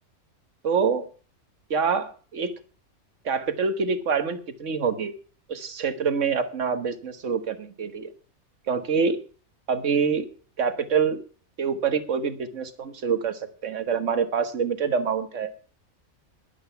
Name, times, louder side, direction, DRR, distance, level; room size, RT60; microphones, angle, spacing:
voice 1, 0.6-1.1 1.7-2.5 3.2-5.1 5.5-8.1 8.7-9.2 9.7-10.3 10.6-11.2 11.6-15.5, right 6 dB, 60° right, 11 dB, 1.6 m, -26 dB
12.0 x 11.0 x 5.7 m, 0.38 s
omnidirectional pair, 1.5 m